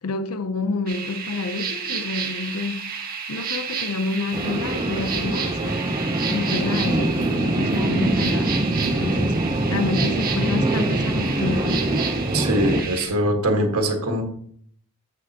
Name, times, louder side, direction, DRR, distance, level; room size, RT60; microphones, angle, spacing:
voice 1, 0.0-2.9 3.3-5.8 6.2-8.6 8.9-9.4 9.7-11.9, left 3 dB, 85° left, 0.6 m, -28 dB
sound 1, 0.9-13.1, right 6 dB, 45° right, 1.4 m, -31 dB
sound 2, 4.3-12.8, right 1 dB, 25° right, 0.7 m, -24 dB
voice 2, 12.3-14.2, right 1 dB, 85° right, 1.6 m, -22 dB
9.5 x 7.8 x 2.9 m
head